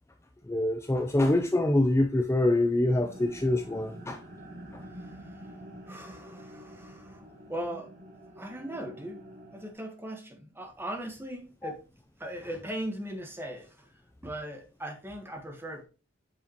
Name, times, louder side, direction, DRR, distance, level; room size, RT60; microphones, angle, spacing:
voice 1, 0.5-4.2 4.7-4.8 11.6-11.7, left 1 dB, 15° left, 0.4 m, -25 dB
sound 1, 3.0-9.7, equal, 45° right, 1.7 m, -47 dB
voice 2, 4.8-5.5 5.9-7.9 8.4-11.8 12.2-15.9, right 1 dB, 10° right, 1.3 m, -39 dB
8.5 x 4.8 x 3.0 m
head